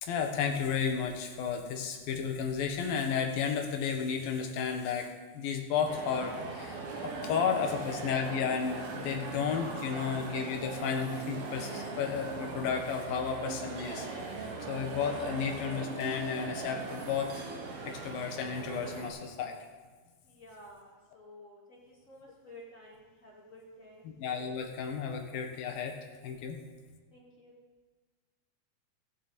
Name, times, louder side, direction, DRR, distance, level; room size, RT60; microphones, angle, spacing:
voice 1, 0.0-5.1 5.3-14.1 14.4-17.4 17.8-19.6 24.0-25.9 26.2-26.6, left 6 dB, 85° left, 3 dB, 3.1 m, -33 dB
sound 1, 5.9-19.1, right 3 dB, 85° right, 3.4 m, -40 dB
voice 2, 9.7-10.1 20.3-24.0 27.1-27.5, left 1 dB, 25° left, -4 dB, 2.1 m, -53 dB
18.5 x 7.4 x 4.2 m, 1.4 s
omnidirectional pair, 4.0 m